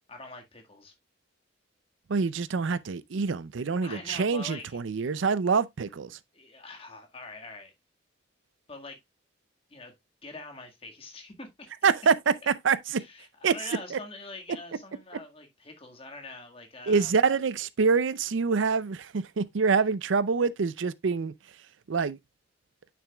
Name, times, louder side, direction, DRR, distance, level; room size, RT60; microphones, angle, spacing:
voice 1, 0.1-0.9 3.8-5.1 6.3-7.7 8.7-9.0 9.7-9.9 10.2-11.7 12.4-12.5 12.9-17.1, left 3 dB, 30° left, 1.7 m, -44 dB
voice 2, 2.1-6.1 11.8-13.0 13.4-13.5 13.9-14.0 16.9-21.3 21.9-22.2, right 5 dB, 75° right, 0.5 m, -26 dB
8.9 x 6.9 x 2.2 m
head